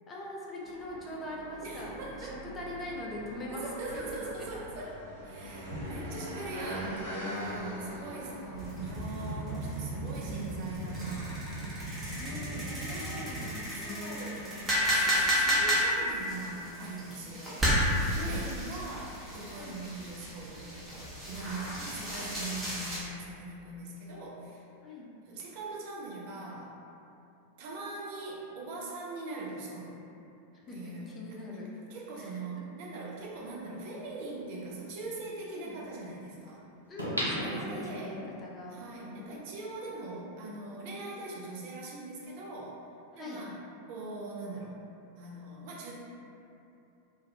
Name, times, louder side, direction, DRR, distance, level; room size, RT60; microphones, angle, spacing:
voice 1, 0.1-2.3 2.5-4.1 4.4-4.5 7.6-8.0 12.2-15.3 18.1-18.5 19.6-19.8 21.8-22.0 24.8-25.1 30.7-31.7 32.2-32.7 35.5-35.8 36.9-39.3 43.1-43.4, left 1 dB, 25° left, -4 dB, 0.5 m, -42 dB
sound 1, 0.6-11.2, equal, 70° right, 0.8 m, -42 dB
voice 2, 1.6-2.4 3.5-12.0 12.4-13.3 13.7-24.7 25.2-26.7 27.6-30.0 30.7-31.6 31.9-36.6 37.4-38.2 38.7-42.8 43.1-43.6 43.9-44.8 45.2-45.9, right 3 dB, 50° right, -3 dB, 0.4 m, -42 dB
sound 2, 8.6-23.0, equal, 15° right, 0.7 m, -32 dB
sound 3, 33.4-33.5 37.0-38.3 38.8-38.9, equal, 90° left, 0.4 m, -34 dB
2.3 x 2.2 x 2.7 m, 2.8 s
figure-of-eight pair, 90°, 0 cm